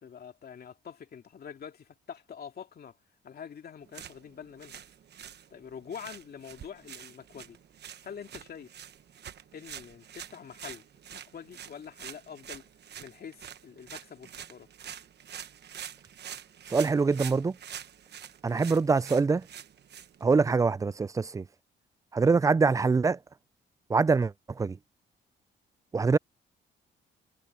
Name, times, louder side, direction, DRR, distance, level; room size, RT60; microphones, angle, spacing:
voice 1, 0.0-3.0 3.2-4.8 5.5-7.6 8.0-8.7 9.5-10.8 11.1-12.7 13.0-14.7, left 7 dB, 50° left, 2.6 m, -45 dB
sound 1, 3.8-20.6, right 9 dB, 55° right, 1.2 m, -46 dB
voice 2, 16.7-17.6 18.4-19.5 20.2-21.4 22.1-23.2 23.9-24.8 25.9-26.2, right 4 dB, 15° right, 0.3 m, -24 dB
cardioid pair, 90°, 20 cm